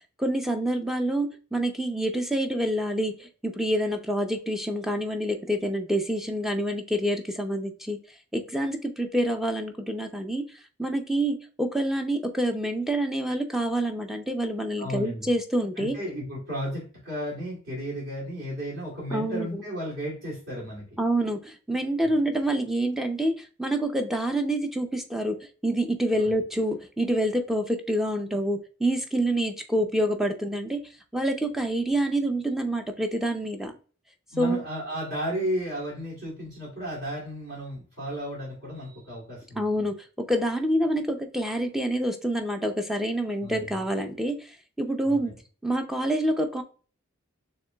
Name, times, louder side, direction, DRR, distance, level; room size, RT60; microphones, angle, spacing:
voice 1, 0.2-8.0 8.3-10.4 10.8-16.0 19.1-19.6 21.0-25.4 25.6-30.8 31.1-33.7 34.4-34.6 39.6-44.5 44.8-45.3 45.6-46.6, right 1 dB, ahead, 5 dB, 0.4 m, -27 dB
voice 2, 14.8-15.3 15.8-20.8 22.0-22.1 26.1-26.3 34.3-39.9 43.4-43.8 45.0-45.2, equal, 60° right, -7 dB, 2.4 m, -34 dB
6.6 x 3.2 x 2.2 m, 0.38 s
head